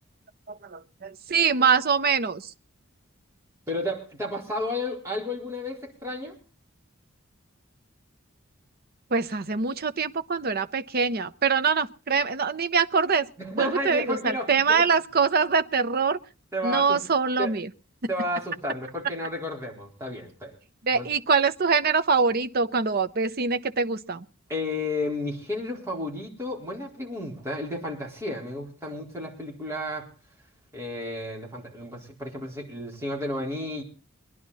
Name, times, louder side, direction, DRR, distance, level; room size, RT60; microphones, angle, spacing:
voice 1, 0.5-2.4 9.1-13.3 13.5-16.2 16.6-17.7 20.8-24.2, right 5 dB, 45° right, 0.7 m, -24 dB
voice 2, 3.7-6.4 13.4-14.9 16.5-17.0 17.4-17.6 18.1-20.5 20.9-21.1 24.5-30.1 30.7-33.8, left 1 dB, 15° right, 4.2 m, -32 dB
22.5 x 11.0 x 4.1 m
head